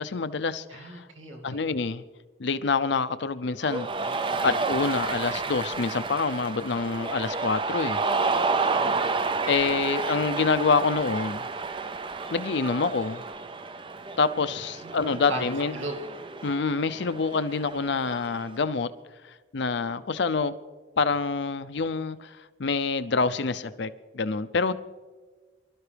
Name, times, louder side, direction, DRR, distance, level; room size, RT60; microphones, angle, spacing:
voice 1, 0.0-1.0 1.4-2.0 2.4-3.9 4.4-8.0 9.5-11.4 12.3-13.2 14.2-15.8 16.4-18.9 19.5-20.5 21.0-24.7, left 4 dB, 65° left, 0.6 m, -26 dB
voice 2, 0.7-1.6 4.0-4.5 8.6-9.2 14.8-15.4 15.7-16.0, right 1 dB, 85° right, 2.4 m, -38 dB
Cheering, 3.6-18.5, right 4 dB, 25° right, 0.5 m, -30 dB
24.5 x 12.5 x 3.4 m
head